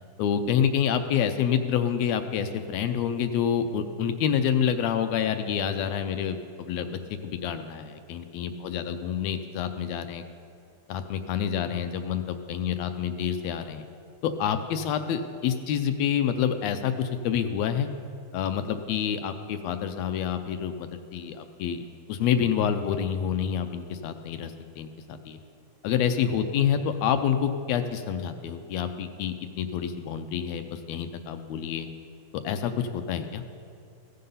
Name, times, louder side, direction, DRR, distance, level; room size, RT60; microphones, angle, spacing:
voice 1, 0.2-10.2 10.9-13.8 14.2-17.9 18.3-25.4 25.8-31.9 32.4-33.4, left 8 dB, 80° left, 9 dB, 1.6 m, -28 dB
15.0 x 7.6 x 5.5 m, 2.5 s
omnidirectional pair, 3.3 m